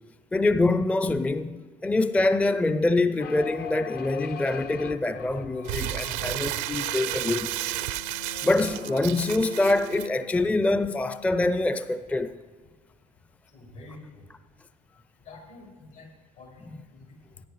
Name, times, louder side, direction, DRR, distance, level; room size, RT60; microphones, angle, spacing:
voice 1, 0.3-7.5 8.4-12.3, left 2 dB, 5° left, 0.4 m, -25 dB
sound 1, 3.2-11.9, left 7 dB, 55° left, 0.6 m, -42 dB
Crumpling crinkling, 5.6-10.1, right 16 dB, 70° right, 0.4 m, -32 dB
voice 2, 13.5-14.2 15.2-16.1 16.4-17.4, left 3 dB, 85° left, 3.9 m, -47 dB
18.0 x 10.0 x 3.1 m
hypercardioid pair, 60°, 20 cm